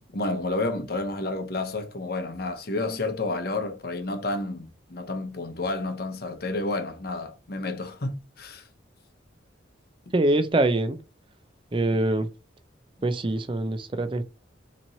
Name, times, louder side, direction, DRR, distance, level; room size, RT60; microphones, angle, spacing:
voice 1, 0.1-8.6, left 2 dB, 55° left, 0.8 m, -30 dB
voice 2, 10.1-11.0 11.7-12.3 13.0-14.2, right 2 dB, 25° right, 0.5 m, -24 dB
4.2 x 3.0 x 2.6 m
head